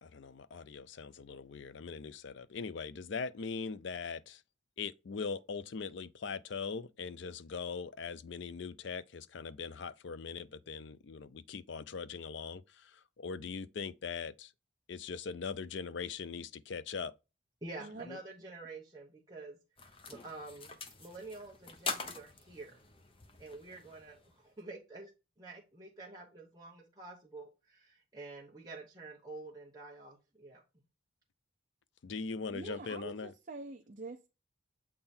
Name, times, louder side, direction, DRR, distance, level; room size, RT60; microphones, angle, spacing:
voice 1, 0.0-4.4 4.8-14.5 14.9-17.1 18.1-18.2 32.0-33.3, left 5 dB, 65° left, 0.4 m, -41 dB
voice 2, 17.6-19.6 20.1-20.7 21.0-22.8 23.4-25.1 25.4-30.6, right 3 dB, 20° right, 1.1 m, -48 dB
sound 1, 19.8-24.5, left 4 dB, 25° left, 0.8 m, -44 dB
voice 3, 32.5-34.3, right 3 dB, 40° right, 0.6 m, -45 dB
7.7 x 3.7 x 4.3 m
head